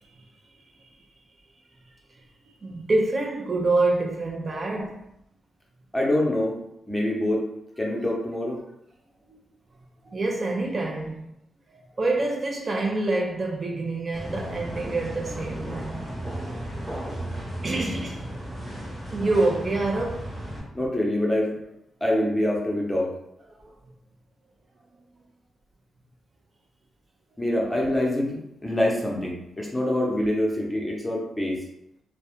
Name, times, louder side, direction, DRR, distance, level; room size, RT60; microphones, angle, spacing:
voice 1, 2.6-5.0 9.3-9.4 10.0-11.3 11.7-16.1 17.6-18.3 19.1-20.3 23.5-23.7, right 2 dB, 45° right, 0.3 m, -26 dB
voice 2, 5.9-6.5 6.9-7.4 7.8-8.6 20.7-21.5 22.0-23.1 27.4-31.6, left 1 dB, 10° left, 0.7 m, -25 dB
sound 1, 14.1-20.6, right 1 dB, 25° right, 1.0 m, -35 dB
2.2 x 2.0 x 2.9 m
cardioid pair, 80°, 0 cm